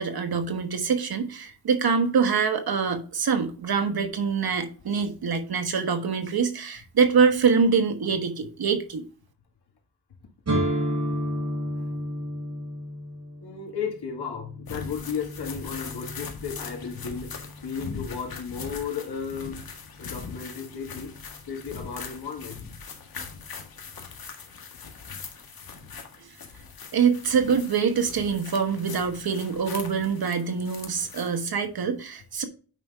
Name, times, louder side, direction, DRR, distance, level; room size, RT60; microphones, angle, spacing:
voice 1, 0.0-9.0 26.9-32.4, right 6 dB, 75° right, 1.3 m, -24 dB
sound 1, 10.5-18.2, equal, 45° right, 4.2 m, -32 dB
voice 2, 13.4-19.6 20.0-21.1 21.5-22.7 23.1-23.3 25.1-25.3, left 6 dB, 90° left, 2.2 m, -34 dB
sound 2, 14.7-31.4, left 5 dB, 70° left, 1.8 m, -41 dB
8.9 x 5.6 x 3.5 m
wide cardioid pair, 100°, 38 cm